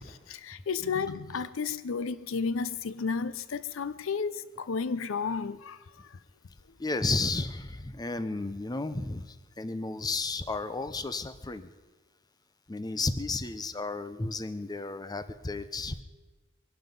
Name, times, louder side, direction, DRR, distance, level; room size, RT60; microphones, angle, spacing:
voice 1, 0.5-6.2, left 5 dB, 70° left, 0.5 m, -32 dB
voice 2, 6.8-11.7 12.7-16.0, left 3 dB, 20° left, 0.6 m, -33 dB
22.5 x 12.0 x 5.3 m
head